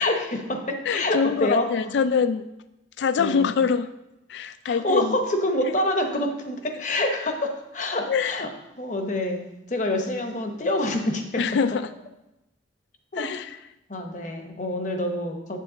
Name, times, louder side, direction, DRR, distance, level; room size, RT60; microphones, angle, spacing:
voice 1, 0.0-1.9 3.2-3.5 4.6-8.5 8.8-11.4 13.1-13.3 13.9-15.6, left 1 dB, 40° left, 5 dB, 0.9 m, -27 dB
voice 2, 0.9-2.5 3.0-3.9 4.3-5.2 8.1-8.4 11.4-11.9 13.2-13.5, left 6 dB, 75° left, 13 dB, 0.3 m, -24 dB
7.6 x 7.4 x 3.9 m, 0.92 s
head